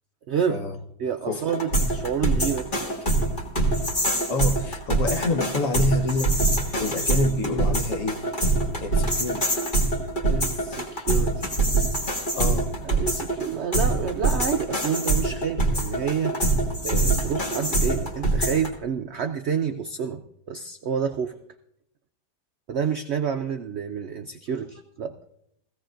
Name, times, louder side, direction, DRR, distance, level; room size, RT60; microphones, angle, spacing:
voice 1, 0.3-0.6 1.0-2.9 10.3-11.5 12.4-12.6 12.8-16.3 16.8-20.2 20.5-21.4 22.7-25.1, right 7 dB, 70° right, 7 dB, 0.6 m, -28 dB
sound 1, 1.5-18.7, right 2 dB, 30° left, 1.8 m, -24 dB
voice 2, 4.3-8.2 8.8-9.5 12.4-12.7, left 2 dB, 55° left, 5 dB, 1.3 m, -27 dB
16.5 x 16.0 x 2.5 m, 0.77 s
omnidirectional pair, 1.8 m